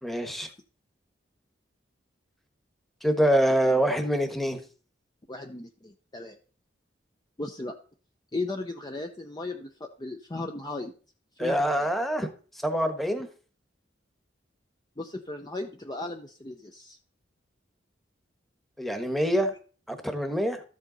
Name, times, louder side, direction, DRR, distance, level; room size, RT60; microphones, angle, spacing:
voice 1, 0.0-0.5 3.0-4.6 11.4-12.3 12.6-13.3 18.8-19.5 19.9-20.6, equal, ahead, 7 dB, 1.2 m, -25 dB
voice 2, 5.3-6.4 7.4-7.8 8.3-10.9 11.4-11.9 15.0-17.0, left 2 dB, 20° left, 4 dB, 0.7 m, -36 dB
13.0 x 7.7 x 4.0 m, 0.40 s
head